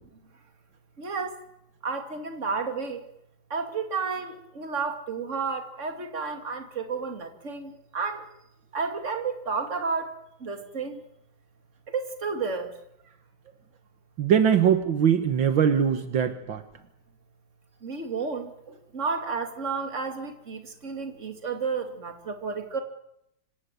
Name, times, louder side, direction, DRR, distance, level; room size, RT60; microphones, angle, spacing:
voice 1, 1.0-1.3 1.8-3.0 3.5-8.2 8.7-10.1 10.4-11.0 11.9-12.7 17.8-18.5 18.9-22.8, right 4 dB, 35° right, 6 dB, 2.8 m, -31 dB
voice 2, 14.2-16.6, right 8 dB, 70° right, 9 dB, 2.1 m, -22 dB
26.0 x 17.0 x 9.3 m, 0.80 s
omnidirectional pair, 2.2 m